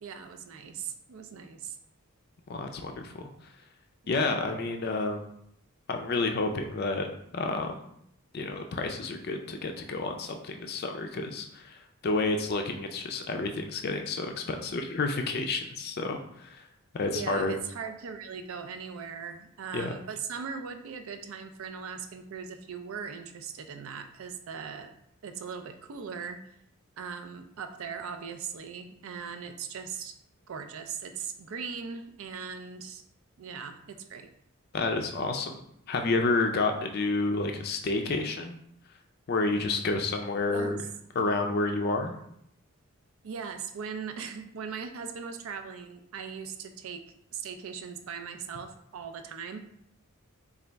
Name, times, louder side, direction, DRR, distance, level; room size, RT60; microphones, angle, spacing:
voice 1, 0.0-1.8 17.0-24.9 25.2-26.4 27.0-30.2 30.5-33.0 33.4-34.3 40.5-40.9 43.2-47.0 47.3-49.6, right 6 dB, 70° right, 8 dB, 0.4 m, -39 dB
voice 2, 2.5-3.2 4.1-5.2 5.9-7.7 8.3-16.6 16.9-17.5 19.7-19.9 34.7-38.6 39.3-40.8 41.2-42.2, left 3 dB, 45° left, 4 dB, 0.4 m, -30 dB
4.0 x 2.4 x 3.3 m, 0.73 s
head